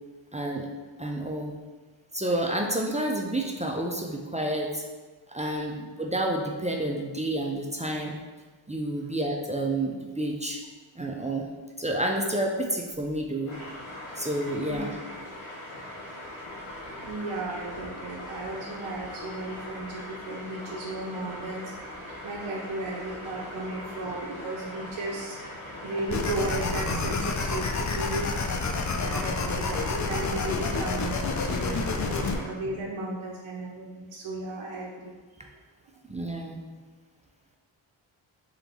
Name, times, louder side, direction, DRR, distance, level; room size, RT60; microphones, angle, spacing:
voice 1, 0.3-0.7 1.0-1.5 2.1-4.9 5.3-8.2 8.7-10.6 11.0-11.5 11.8-13.5 14.2-14.9 36.1-36.6, right 1 dB, 15° right, 1 dB, 0.5 m, -29 dB
sound 1, 13.5-32.4, left 1 dB, 85° left, 1.3 m, -41 dB
voice 2, 17.0-21.7 22.2-25.4 25.8-28.3 29.0-35.5, right 2 dB, 70° right, -3 dB, 0.8 m, -35 dB
sound 2, 26.1-32.4, left 4 dB, 35° left, 0.5 m, -29 dB
3.4 x 3.0 x 4.0 m, 1.3 s
cardioid pair, 50°, 50 cm